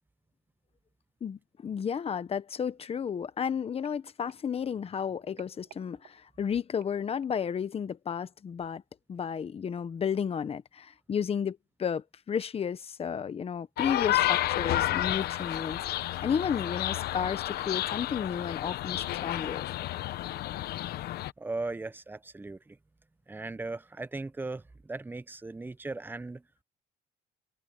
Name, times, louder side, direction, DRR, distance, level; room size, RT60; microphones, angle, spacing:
voice 1, 1.2-8.8 9.1-19.6, left 7 dB, 35° left, 1.2 m, -33 dB
sound 1, 2.5-7.5 8.1-8.4 8.6-8.7, right 14 dB, 70° right, 7.7 m, -60 dB
sound 2, 13.8-21.3, left 14 dB, 70° left, 0.9 m, -31 dB
voice 2, 21.4-22.8 23.3-26.5, right 3 dB, 10° right, 0.8 m, -38 dB
cardioid pair, 110°, 17 cm